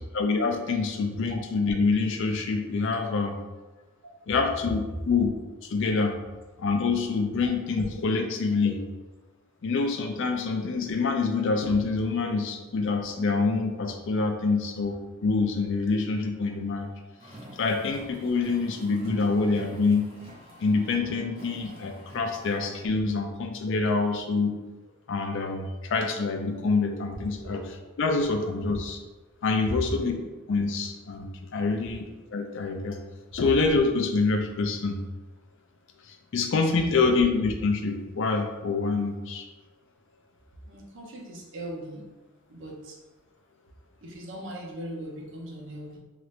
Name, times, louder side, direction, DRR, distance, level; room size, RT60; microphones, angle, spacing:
voice 1, 0.1-3.4 4.3-5.3 5.6-6.2 6.6-8.8 9.6-16.9 17.6-20.1 20.6-24.6 25.1-29.0 29.4-30.1 30.5-32.1 32.3-33.0 33.3-35.0 36.1-39.5, left 4 dB, 55° left, 4 dB, 0.4 m, -26 dB
Car, 17.2-22.8, equal, 25° right, 0.8 m, -47 dB
voice 2, 40.7-42.0 42.5-43.0 44.0-46.0, right 1 dB, 55° right, -1 dB, 0.7 m, -39 dB
2.9 x 2.5 x 3.1 m, 1.2 s
head